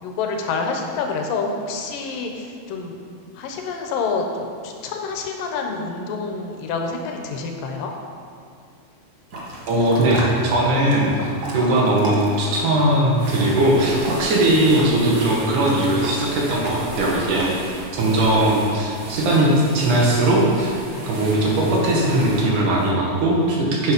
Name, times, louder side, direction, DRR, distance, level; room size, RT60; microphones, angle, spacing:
voice 1, 0.0-3.0 3.4-7.9, left 4 dB, 90° left, 3 dB, 2.7 m, -27 dB
sound 1, 9.3-17.5, right 2 dB, 55° right, 1.1 m, -35 dB
voice 2, 9.7-17.5 17.9-20.7 21.1-23.9, right 1 dB, 70° right, -3 dB, 3.1 m, -19 dB
sound 2, 13.1-22.9, right 1 dB, 85° right, 3.4 m, -35 dB
9.4 x 7.6 x 5.3 m, 2.2 s
omnidirectional pair, 3.8 m